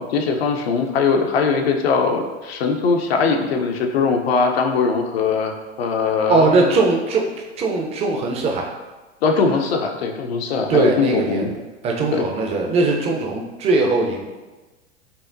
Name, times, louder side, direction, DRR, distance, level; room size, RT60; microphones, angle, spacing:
voice 1, 0.0-6.8 9.2-11.5 12.1-12.3, left 5 dB, 60° left, 3 dB, 0.6 m, -21 dB
voice 2, 6.3-8.7 10.5-11.5 11.8-14.3, right 3 dB, 20° right, 0 dB, 0.4 m, -20 dB
5.4 x 2.1 x 2.5 m, 1.2 s
figure-of-eight pair, 95°, 34 cm